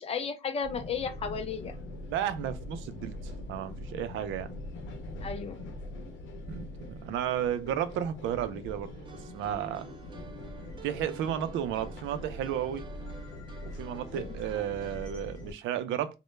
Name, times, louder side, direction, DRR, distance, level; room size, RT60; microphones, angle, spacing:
voice 1, 0.0-1.8 5.2-5.6 14.1-14.3, left 6 dB, 30° left, 0.4 m, -34 dB
sound 1, 0.6-15.5, left 1 dB, 80° left, 0.7 m, -43 dB
voice 2, 2.1-4.5 6.5-8.9 9.3-9.9 10.8-12.9 13.7-16.2, right 10 dB, 90° right, 0.4 m, -33 dB
sound 2, 8.9-15.0, right 5 dB, 25° right, 0.5 m, -50 dB
2.1 x 2.1 x 3.0 m
cardioid pair, 155°, 20 cm